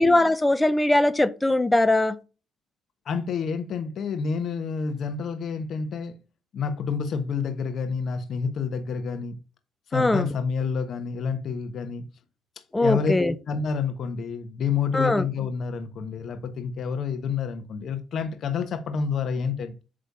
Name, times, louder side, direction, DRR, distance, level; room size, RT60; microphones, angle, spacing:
voice 1, 0.0-2.1 9.9-10.2 12.7-13.3 14.9-15.2, left 2 dB, 15° left, 0.8 m, -21 dB
voice 2, 3.0-6.2 6.5-9.4 9.9-12.0 12.8-13.1 13.5-19.8, left 6 dB, 65° left, 1.2 m, -28 dB
8.6 x 3.4 x 5.3 m
cardioid pair, 90°, 0 cm